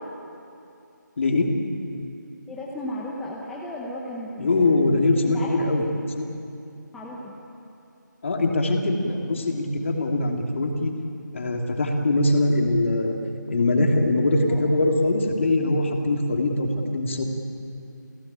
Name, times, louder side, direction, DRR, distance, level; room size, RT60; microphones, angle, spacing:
voice 1, 1.2-1.5 4.4-6.3 8.2-10.9 11.3-13.2 13.5-17.2, left 2 dB, 40° left, 2 dB, 2.9 m, -22 dB
voice 2, 2.5-4.8 5.3-5.5 6.9-7.3 14.5-14.6, left 1 dB, ahead, -5 dB, 0.8 m, -35 dB
29.0 x 16.5 x 9.0 m, 2.6 s
figure-of-eight pair, 165°, 11 cm